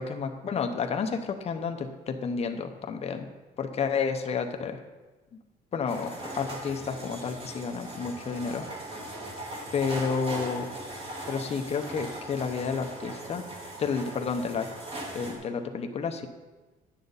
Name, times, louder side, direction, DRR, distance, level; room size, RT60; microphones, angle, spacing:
voice 1, 0.0-3.3 3.6-4.8 5.7-8.6 9.7-10.7 11.3-13.4 13.8-14.7 15.1-16.3, left 5 dB, 40° left, 5 dB, 0.8 m, -30 dB
sound 1, 5.9-15.4, right 1 dB, 30° right, 2.4 m, -39 dB
10.0 x 7.0 x 4.0 m, 1.2 s
cardioid pair, 110°, 17 cm